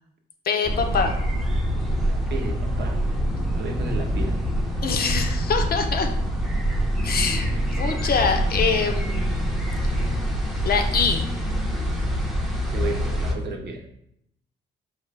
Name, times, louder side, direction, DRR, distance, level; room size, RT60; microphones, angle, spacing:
voice 1, 0.4-1.1 4.8-6.1 7.0-9.5 10.6-11.3, left 5 dB, 50° left, 4 dB, 0.6 m, -24 dB
sound 1, 0.6-13.3, equal, ahead, 0.7 m, -25 dB
voice 2, 2.0-3.0 3.5-4.4 12.7-13.8, right 4 dB, 60° right, 3 dB, 0.7 m, -33 dB
5.0 x 2.4 x 3.3 m, 0.75 s
cardioid pair, 90°, 20 cm